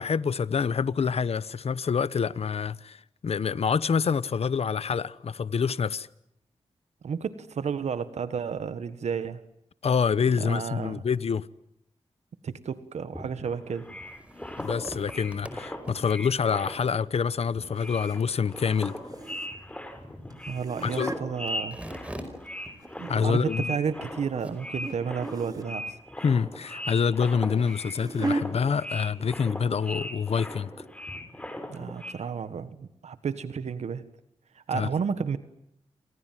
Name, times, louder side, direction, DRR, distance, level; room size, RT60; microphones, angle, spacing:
voice 1, 0.0-6.1 9.8-11.5 14.6-18.9 20.8-21.1 23.1-23.7 26.2-30.7 34.7-34.9, left 6 dB, 70° left, 1.0 m, -26 dB
voice 2, 7.0-9.4 10.4-11.0 12.4-13.8 20.5-21.8 23.0-26.0 31.7-34.0 34.7-35.4, right 6 dB, 90° right, 1.6 m, -32 dB
sound 1, 13.1-17.1 17.4-32.1, left 1 dB, 10° left, 5.2 m, -39 dB
sound 2, 13.8-25.0, equal, 10° right, 4.9 m, -47 dB
sound 3, 14.6-14.8 17.8-18.2 18.5-19.7 20.3-21.2 22.2-23.1 23.5-23.8 24.8-25.0 25.2-25.8 27.2-28.5 29.3-29.5 29.8-29.9 30.4-30.5, right 2 dB, 35° right, 2.7 m, -35 dB
29.0 x 26.0 x 7.6 m
wide cardioid pair, 90°, 11 cm